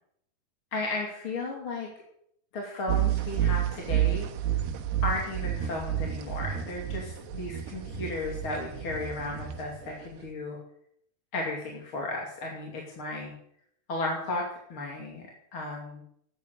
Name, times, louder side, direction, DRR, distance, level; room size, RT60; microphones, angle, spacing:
voice 1, 0.7-1.9 2.5-4.3 5.0-10.6 11.3-13.3 13.9-16.0, left 2 dB, 35° left, -1 dB, 3.0 m, -34 dB
sound 1, 2.9-10.3, right 11 dB, 80° right, 3.1 m, -30 dB
13.0 x 10.0 x 8.1 m, 0.70 s
omnidirectional pair, 4.7 m